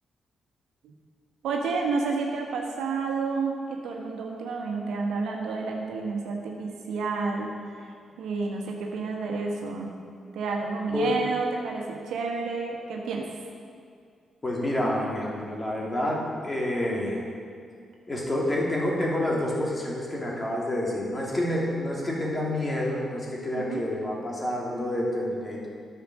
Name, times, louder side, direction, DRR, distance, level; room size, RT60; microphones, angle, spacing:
voice 1, 1.4-9.9 10.3-13.2 23.5-23.8, right 4 dB, 75° right, 0 dB, 1.3 m, -30 dB
voice 2, 10.9-11.2 14.4-17.2 18.1-25.7, left 1 dB, 25° left, -3 dB, 3.0 m, -28 dB
10.5 x 6.7 x 6.3 m, 2.2 s
hypercardioid pair, 45°, 0 cm